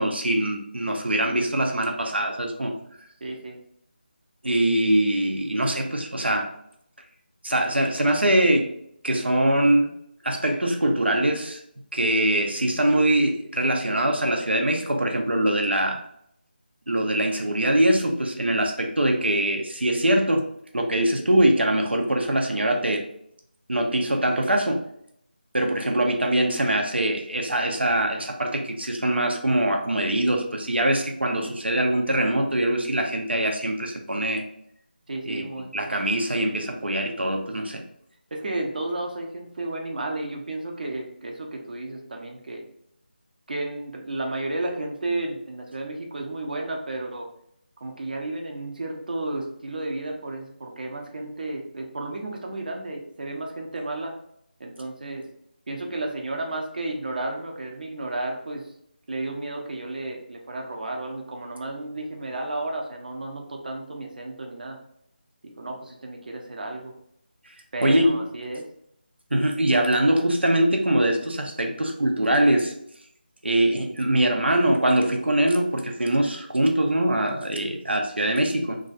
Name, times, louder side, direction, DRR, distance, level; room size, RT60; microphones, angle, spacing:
voice 1, 0.0-2.8 4.4-6.5 7.4-8.7 9.0-9.9 10.2-11.6 11.9-16.0 16.9-20.5 20.7-23.1 23.7-24.9 25.5-34.4 35.3-35.4 35.7-37.8 67.8-68.2 69.3-72.7 73.4-78.8, right 1 dB, 90° right, 3 dB, 0.8 m, -23 dB
voice 2, 3.2-3.6 35.1-35.7 38.3-42.6 43.5-47.3 47.8-54.1 54.6-55.3 55.7-58.6 59.1-64.8 65.4-66.9 67.7-68.7, right 2 dB, 55° right, 1 dB, 0.8 m, -32 dB
3.2 x 2.5 x 4.0 m, 0.72 s
figure-of-eight pair, 165°, 6 cm